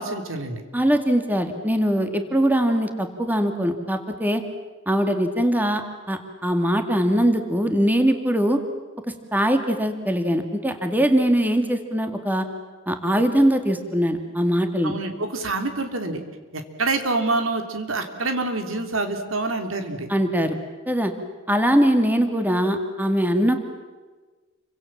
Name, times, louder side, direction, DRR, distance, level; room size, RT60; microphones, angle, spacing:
voice 1, 0.0-0.6 14.8-16.2 16.5-20.1, right 3 dB, 85° right, 6 dB, 3.4 m, -26 dB
voice 2, 0.7-4.4 4.9-5.8 6.1-8.6 9.3-12.5 12.9-15.0 20.1-20.6 20.9-21.1 21.5-23.6, equal, 10° right, 6 dB, 2.3 m, -21 dB
29.5 x 25.0 x 7.5 m, 1.3 s
head